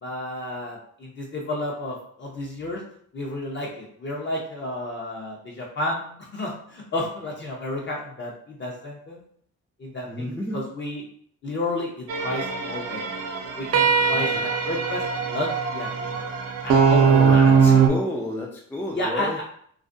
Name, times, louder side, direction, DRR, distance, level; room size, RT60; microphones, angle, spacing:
voice 1, 0.0-2.8 3.1-9.2 9.8-11.1 11.4-13.1 13.6-16.2 16.6-17.5 18.9-19.4, left 1 dB, 40° left, -2 dB, 0.6 m, -31 dB
voice 2, 10.1-10.6 14.1-14.4 17.0-19.4, left 1 dB, 5° left, -1 dB, 0.3 m, -31 dB
sound 1, 12.1-17.9, right 6 dB, 55° right, 0.5 m, -20 dB
2.4 x 2.1 x 2.5 m, 0.62 s
cardioid pair, 90°, 30 cm